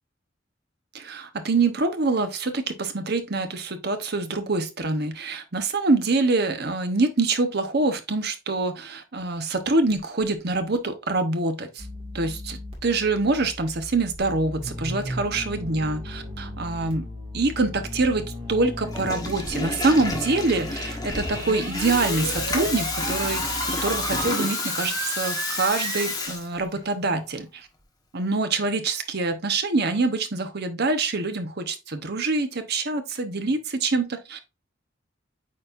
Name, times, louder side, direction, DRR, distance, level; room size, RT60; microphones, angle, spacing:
voice 1, 0.9-11.9 12.1-17.1 17.3-27.7 28.1-34.4, right 3 dB, 55° right, 1.0 m, -25 dB
sound 1, 11.8-24.2, left 1 dB, 30° right, 2.0 m, -37 dB
Water tap faucet / Toilet flush, 18.8-26.8, left 3 dB, 20° left, 1.3 m, -30 dB
sound 2, 21.1-26.1, right 3 dB, 90° right, 2.5 m, -33 dB
8.7 x 4.2 x 2.6 m
head